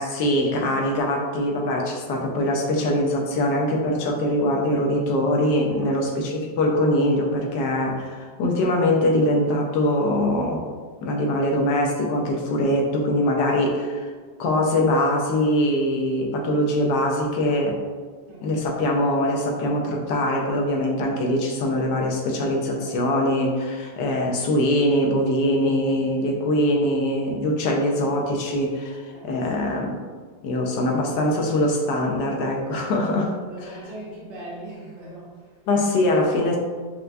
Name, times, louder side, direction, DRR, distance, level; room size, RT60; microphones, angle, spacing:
voice 1, 0.0-10.6 11.0-14.1 14.4-17.8 18.4-30.0 30.4-33.3 33.6-33.7 35.7-36.6, left 1 dB, 80° left, 0 dB, 1.2 m, -22 dB
voice 2, 18.3-18.6 22.8-22.9 25.9-26.2 29.1-29.5 32.7-32.9 33.4-35.5, right 1 dB, 85° right, -7 dB, 1.6 m, -40 dB
4.4 x 2.3 x 2.5 m, 1.5 s
omnidirectional pair, 1.8 m